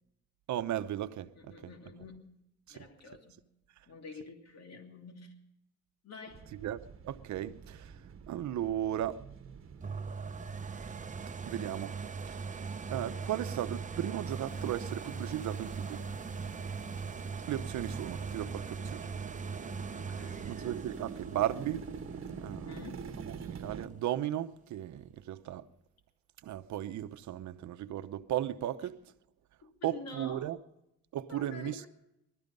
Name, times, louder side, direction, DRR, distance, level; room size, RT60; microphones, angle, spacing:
voice 1, 0.5-1.5 2.7-2.9 6.6-9.2 11.5-12.0 12.3-16.0 17.5-19.1 20.4-21.9 22.3-22.7 23.3-25.7 26.4-29.1 29.8-30.6 31.1-31.8, right 12 dB, 70° right, 0.9 m, -36 dB
voice 2, 1.3-2.4 2.7-3.4 3.9-5.3 6.0-6.5 20.1-20.7 22.5-23.1 29.6-30.5 31.3-31.9, left 4 dB, 55° left, 2.9 m, -48 dB
sound 1, 6.3-23.9, right 6 dB, 45° right, 1.3 m, -47 dB
sound 2, 9.8-23.5 24.0-24.1, right 5 dB, 25° right, 0.8 m, -41 dB
sound 3, 14.5-20.0, left 1 dB, 35° left, 5.1 m, -56 dB
20.0 x 13.0 x 5.4 m
cardioid pair, 90°, 30 cm